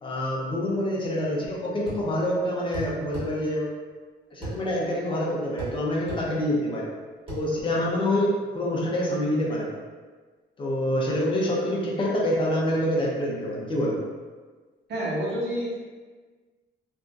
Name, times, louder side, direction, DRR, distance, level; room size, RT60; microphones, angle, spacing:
voice 1, 0.0-3.7 4.3-6.9 7.3-9.8 10.6-14.0, left 1 dB, 25° left, -3 dB, 0.7 m, -26 dB
sound 1, 1.9-2.1 2.7-3.3 4.4-4.6 5.6-5.8 6.1-6.2 7.3-7.4, right 2 dB, 30° right, 1.5 m, -34 dB
voice 2, 14.9-15.7, equal, 60° right, -7 dB, 1.0 m, -28 dB
3.4 x 2.6 x 2.5 m, 1.4 s
cardioid pair, 135°, 20 cm